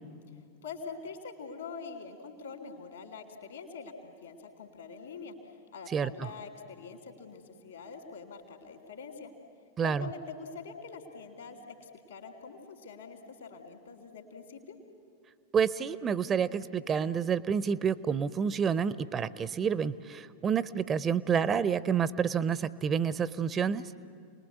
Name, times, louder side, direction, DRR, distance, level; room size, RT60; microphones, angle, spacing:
voice 1, 0.6-9.3 9.8-14.8, left 5 dB, 70° left, 5 dB, 3.0 m, -44 dB
voice 2, 5.9-6.3 9.8-10.1 15.5-23.9, right 7 dB, 25° right, 18 dB, 0.6 m, -29 dB
29.0 x 20.0 x 8.2 m, 2.3 s
figure-of-eight pair, 90°, 0 cm